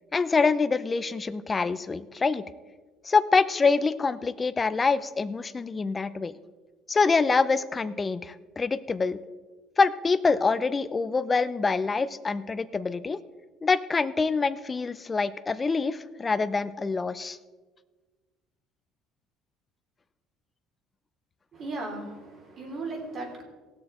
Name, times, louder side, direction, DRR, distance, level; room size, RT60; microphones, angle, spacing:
voice 1, 0.1-2.4 3.0-6.3 6.9-9.2 9.8-13.2 13.6-17.4, left 4 dB, 20° left, 14 dB, 0.5 m, -25 dB
voice 2, 21.5-23.4, right 2 dB, 40° right, 1 dB, 3.1 m, -36 dB
18.5 x 6.7 x 4.3 m, 1.3 s
cardioid pair, 130°, 0 cm